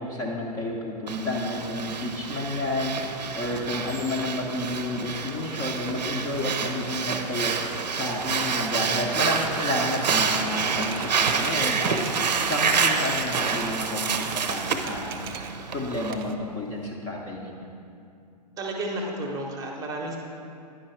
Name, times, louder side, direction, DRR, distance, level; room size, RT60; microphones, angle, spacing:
voice 1, 0.0-15.3 15.7-17.7, left 1 dB, 15° left, -2 dB, 0.6 m, -31 dB
Breathing, 1.1-16.1, right 5 dB, 80° right, 0.6 m, -28 dB
Typewriter, 10.7-13.7 14.0-15.6 15.9-16.9, right 8 dB, 35° right, 0.4 m, -41 dB
voice 2, 18.6-20.2, right 1 dB, 15° right, 0 dB, 0.8 m, -32 dB
10.0 x 4.5 x 4.4 m, 2.5 s
hypercardioid pair, 130°, 21 cm